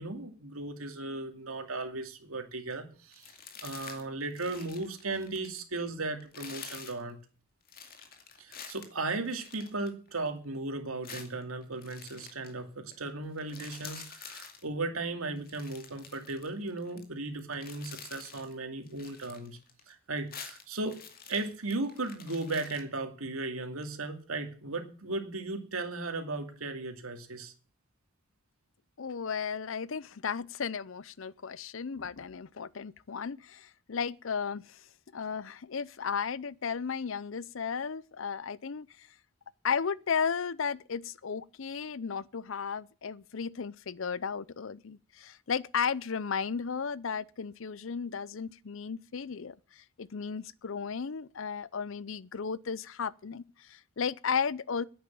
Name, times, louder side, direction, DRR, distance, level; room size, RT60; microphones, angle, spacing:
voice 1, 0.0-3.3 3.6-7.2 8.4-19.6 19.9-21.0 21.3-27.5, right 2 dB, 85° right, 2.4 m, -36 dB
sound 1, 3.1-4.0 4.3-5.7 6.2-7.0 7.7-10.3 11.0-12.5 12.9-13.1 13.3-14.6 15.4-17.0 17.4-18.5 18.9-19.9 20.2-22.8, left 6 dB, 45° left, 2.3 m, -48 dB
voice 2, 29.0-34.8 35.1-39.1 39.6-54.8, left 6 dB, 65° left, 0.6 m, -34 dB
10.5 x 8.7 x 8.7 m
head